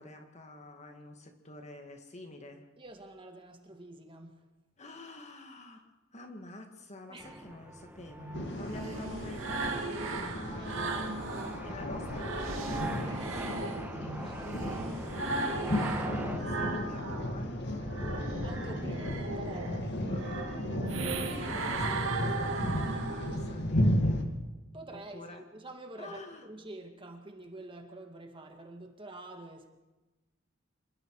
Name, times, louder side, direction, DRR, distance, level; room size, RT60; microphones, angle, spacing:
voice 1, 0.0-2.7 4.8-5.9 6.1-10.9 11.6-17.9 20.0-24.2 24.9-25.4 26.0-26.5, left 1 dB, 35° left, 2.2 m, -48 dB
voice 2, 2.8-4.5 7.1-7.4 10.4-12.0 14.1-14.5 18.4-20.0 24.7-29.7, right 2 dB, 25° right, 2.2 m, -47 dB
sound 1, 7.2-16.4, right 1 dB, 10° right, 1.7 m, -42 dB
sound 2, 8.2-11.6 12.0-17.3 17.7-23.6, right 3 dB, 80° right, 2.4 m, -37 dB
sound 3, 8.3-24.2, left 1 dB, 60° left, 2.1 m, -34 dB
27.0 x 21.5 x 4.9 m
head